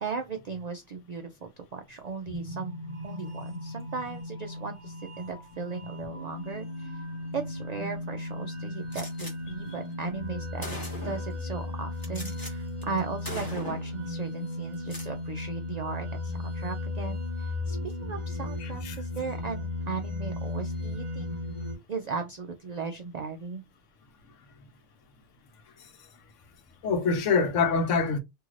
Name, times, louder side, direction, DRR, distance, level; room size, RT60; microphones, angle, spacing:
voice 1, 0.0-2.8 3.0-7.0 7.3-10.7 11.0-21.3 21.9-23.6, right 4 dB, 75° right, 0.3 m, -37 dB
sound 1, 2.3-21.7, left 2 dB, 30° right, 0.8 m, -36 dB
Gunshot gunfire, 8.9-9.3 10.2-10.3 10.6-11.3 12.0-12.5 12.8-13.0 13.2-13.9 14.7-15.1, left 1 dB, 20° left, 1.1 m, -39 dB
voice 2, 18.6-19.0 26.8-28.2, left 5 dB, 85° left, 1.1 m, -25 dB
2.7 x 2.4 x 3.1 m
omnidirectional pair, 1.2 m